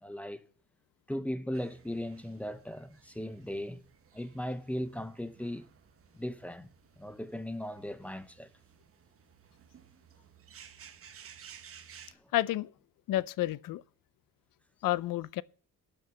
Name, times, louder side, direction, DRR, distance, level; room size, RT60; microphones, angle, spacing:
voice 1, 0.0-0.4 1.1-3.8 4.1-5.6 6.1-6.7 7.0-8.5, left 1 dB, 5° left, 0.6 m, -37 dB
sound 1, 1.5-12.1, right 8 dB, 45° right, 1.2 m, -56 dB
voice 2, 12.3-12.7 13.1-13.8 14.8-15.4, left 15 dB, 85° left, 0.6 m, -30 dB
12.5 x 6.9 x 8.1 m
cardioid pair, 180°, 33 cm